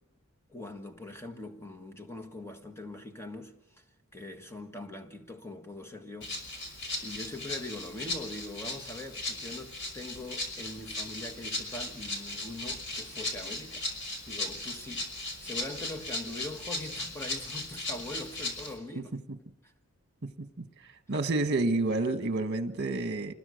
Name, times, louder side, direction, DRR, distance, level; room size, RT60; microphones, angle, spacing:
voice 1, 0.5-3.8 4.1-6.4 7.0-15.1 15.4-19.1 19.6-19.7, left 2 dB, 10° left, 1.6 m, -42 dB
Rattle (instrument), 6.2-18.7, left 2 dB, 60° left, 5.5 m, -37 dB
voice 2, 20.2-20.7 21.1-23.3, right 2 dB, 50° right, 1.4 m, -29 dB
27.0 x 21.0 x 6.5 m
head